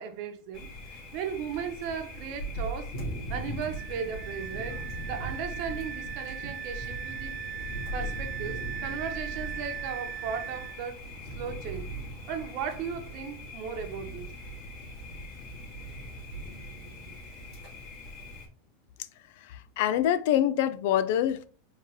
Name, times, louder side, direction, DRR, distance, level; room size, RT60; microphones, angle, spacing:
voice 1, 0.0-2.9 3.3-7.4 7.9-11.0 11.3-11.9 12.3-14.3, right 7 dB, 50° right, 1.0 m, -36 dB
Thunder, 0.5-18.5, equal, 45° left, 2.1 m, -39 dB
Wind instrument woodwind instrument, 3.8-10.8, right 11 dB, 35° right, 0.5 m, -39 dB
voice 2, 19.4-21.5, left 11 dB, 65° left, 0.4 m, -26 dB
4.5 x 3.1 x 3.5 m
supercardioid pair, 140°, 0 cm